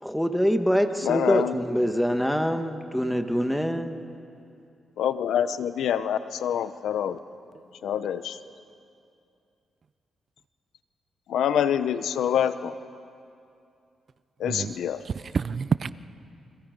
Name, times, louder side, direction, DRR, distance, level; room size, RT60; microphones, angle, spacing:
voice 1, 0.0-4.0, equal, 5° left, 6 dB, 1.6 m, -25 dB
voice 2, 1.1-1.5 5.0-7.2 7.8-8.3 11.3-12.7 14.4-15.0, left 9 dB, 85° left, 12 dB, 0.8 m, -26 dB
voice 3, 15.1-15.9, right 5 dB, 45° right, 15 dB, 0.5 m, -28 dB
30.0 x 25.5 x 5.3 m, 2.5 s
cardioid pair, 95°, 0 cm